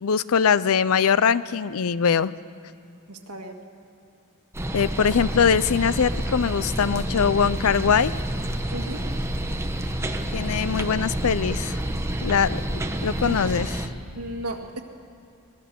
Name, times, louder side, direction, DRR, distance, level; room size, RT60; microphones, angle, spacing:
voice 1, 0.0-2.3 4.7-8.1 10.3-11.8 12.2-13.8, left 6 dB, 70° left, 17 dB, 0.5 m, -22 dB
voice 2, 3.1-3.6 8.7-9.1 13.2-13.4 14.1-14.8, right 1 dB, 75° right, 1 dB, 2.0 m, -34 dB
sound 1, 4.5-13.9, right 1 dB, 10° right, 1.2 m, -28 dB
23.5 x 18.5 x 7.0 m, 2.3 s
head